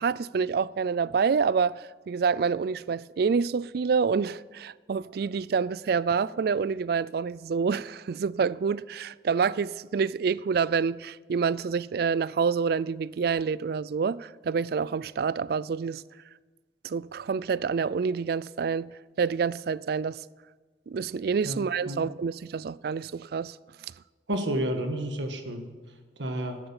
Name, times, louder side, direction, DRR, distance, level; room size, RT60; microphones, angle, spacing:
voice 1, 0.0-16.0 16.8-18.9 19.2-20.2 20.9-23.6, right 5 dB, 60° right, 0.3 m, -27 dB
voice 2, 24.3-25.7 26.2-26.6, right 1 dB, 85° right, 1.6 m, -30 dB
11.5 x 11.0 x 7.1 m
head